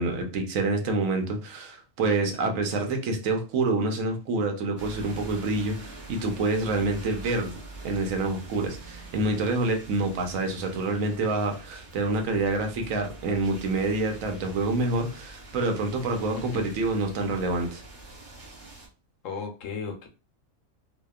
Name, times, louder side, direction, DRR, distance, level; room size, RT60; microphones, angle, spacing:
voice 1, 0.0-7.5 7.8-17.8, right 2 dB, 85° right, 4 dB, 1.0 m, -27 dB
sound 1, 4.8-18.9, right 2 dB, 15° right, 0.7 m, -44 dB
voice 2, 16.3-16.6 19.2-20.1, left 5 dB, 75° left, 3 dB, 1.0 m, -35 dB
2.7 x 2.3 x 2.2 m, 0.34 s
omnidirectional pair, 1.4 m